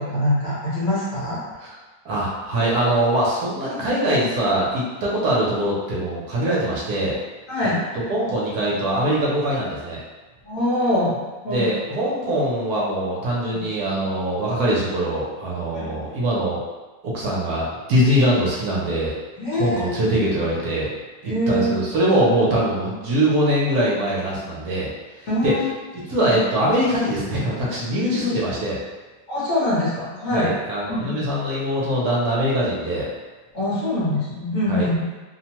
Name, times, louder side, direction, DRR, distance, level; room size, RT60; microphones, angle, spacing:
voice 1, 0.0-1.4 7.5-7.8 10.4-11.6 13.5-13.6 15.7-16.0 19.4-19.9 21.2-21.7 25.3-25.7 26.0-26.4 29.3-30.5 30.9-31.0 33.5-35.0, left 1 dB, 55° left, -9 dB, 1.2 m, -24 dB
voice 2, 2.0-7.1 7.6-7.7 8.1-10.0 11.5-16.6 17.0-19.1 19.5-20.9 21.2-24.9 25.4-25.5 25.9-28.8 30.3-33.1 34.7-34.9, right 1 dB, 70° right, -6 dB, 1.1 m, -22 dB
3.0 x 2.1 x 2.8 m, 1.2 s
omnidirectional pair, 1.8 m